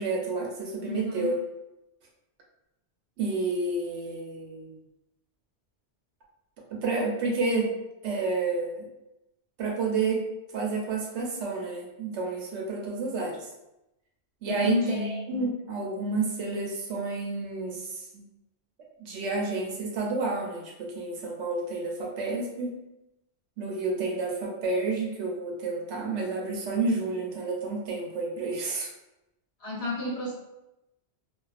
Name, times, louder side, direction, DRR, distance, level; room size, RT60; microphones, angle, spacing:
voice 1, 0.0-1.4 3.2-4.8 6.7-7.7 8.0-8.9 9.6-10.3 10.5-13.5 14.4-18.2 19.0-22.8 23.6-28.9, right 3 dB, 80° right, -2 dB, 0.9 m, -30 dB
voice 2, 0.9-1.3 14.5-15.2 29.6-30.3, left 3 dB, 35° left, -8 dB, 0.8 m, -30 dB
2.4 x 2.3 x 2.4 m, 0.91 s
omnidirectional pair, 1.2 m